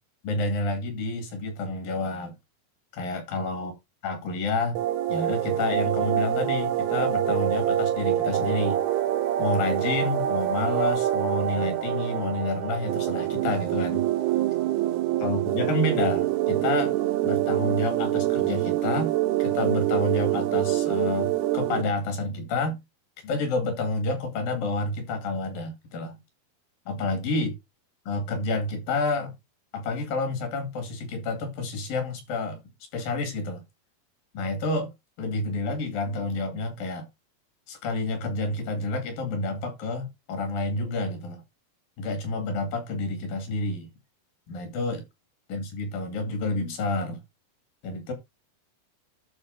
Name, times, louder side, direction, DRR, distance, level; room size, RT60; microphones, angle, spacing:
voice 1, 0.2-2.4 2.9-3.7 4.0-4.8 5.1-8.8 9.4-14.0 15.2-16.9 17.2-19.1 19.4-22.8 23.2-26.1 26.9-27.5 28.1-29.3 29.7-32.6 32.9-33.6 34.3-34.9 35.2-37.1 37.7-41.4 42.0-43.9 44.5-45.0 45.5-47.2 47.8-48.1, left 2 dB, 65° left, 3.8 m, -29 dB
sound 1, 4.8-21.8, right 13 dB, 85° right, 2.8 m, -26 dB
11.5 x 4.3 x 3.9 m
omnidirectional pair, 4.4 m